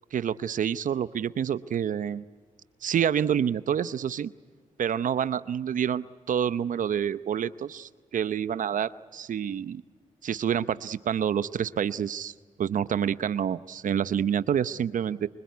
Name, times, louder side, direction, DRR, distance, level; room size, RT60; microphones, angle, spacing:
voice 1, 0.1-2.2 2.8-4.3 4.8-9.8 10.2-12.3 12.6-15.3, right 8 dB, 70° right, 15 dB, 0.8 m, -28 dB
25.5 x 25.0 x 9.5 m, 1.5 s
cardioid pair, 65°, 14 cm